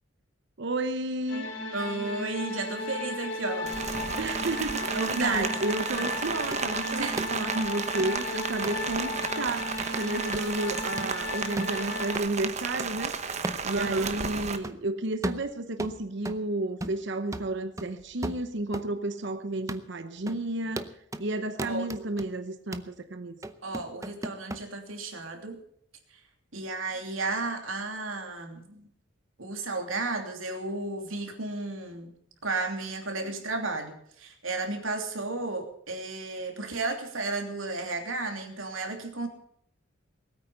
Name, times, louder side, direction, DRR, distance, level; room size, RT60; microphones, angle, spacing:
voice 1, 0.6-1.5 4.2-13.4 13.6-20.9 21.2-23.4, right 2 dB, 60° right, 0.9 m, -32 dB
sound 1, 1.3-12.2, left 2 dB, 75° left, 3.5 m, -35 dB
voice 2, 1.7-3.8 4.9-5.6 5.9-6.1 7.0-7.3 13.6-14.4 21.6-21.9 23.6-25.6 26.1-26.2 26.5-28.9 29.4-32.1 32.4-39.3, right 3 dB, 85° right, 2.9 m, -33 dB
Rain, 3.7-14.6, right 5 dB, 35° right, 1.1 m, -33 dB
sound 2, 6.5-6.6 7.2-7.3 8.0-8.1 8.6-8.8 9.2-9.3 9.8-10.0 10.3-10.5 11.0-11.1 11.6-11.8 12.2-12.3 12.8-12.9 13.4-13.7 14.0-14.1 14.6-14.8 15.2-16.5 16.8-17.1 17.3-18.9 19.2-19.3 19.7-19.9 20.3-20.4 20.8-21.3 21.6-22.3 22.7-22.9 23.4-24.6, right 1 dB, 15° right, 0.7 m, -36 dB
20.0 x 9.0 x 6.7 m
head